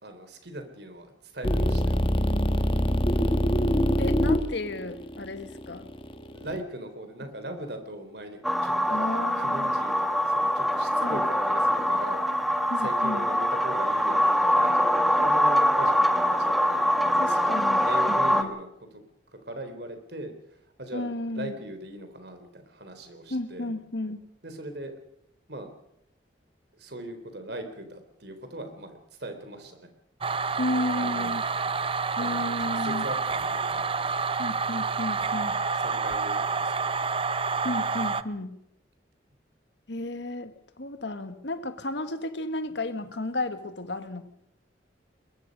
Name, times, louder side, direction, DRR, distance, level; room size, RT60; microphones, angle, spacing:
voice 1, 0.0-2.0 6.3-8.7 9.4-12.2 12.8-16.9 17.4-19.0 19.4-23.7 24.4-24.9 25.5-25.7 26.7-29.9 30.5-31.5 32.1-33.2 33.5-34.2 35.8-36.9, right 1 dB, 60° right, 7 dB, 3.7 m, -40 dB
sound 1, 1.4-6.6, equal, 30° left, 1.5 m, -24 dB
voice 2, 4.0-5.9 8.9-9.7 11.0-11.2 12.7-13.3 17.2-18.5 20.9-21.5 23.3-24.2 30.6-31.4 32.2-33.0 34.4-35.6 37.6-38.6 39.9-44.2, left 2 dB, 70° left, 10 dB, 1.7 m, -33 dB
sound 2, 8.4-18.4, equal, ahead, 1.5 m, -24 dB
sound 3, 30.2-38.2, right 4 dB, 30° right, 0.7 m, -28 dB
22.0 x 22.0 x 5.3 m, 0.77 s
head